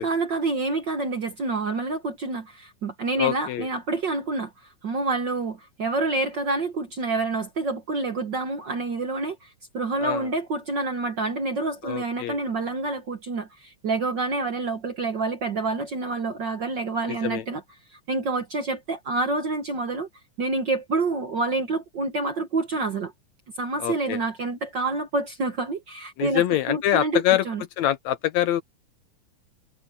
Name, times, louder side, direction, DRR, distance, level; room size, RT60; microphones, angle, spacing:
voice 1, 0.0-4.5 4.8-9.5 9.7-17.6 18.1-20.1 20.4-23.1 23.6-26.4 26.7-27.6, right 3 dB, 50° right, 1.4 m, -27 dB
voice 2, 3.2-3.7 10.0-10.3 11.8-12.4 17.1-17.4 23.8-24.2 26.2-27.5 27.8-28.6, left 13 dB, 75° left, 1.9 m, -24 dB
omnidirectional pair, 3.6 m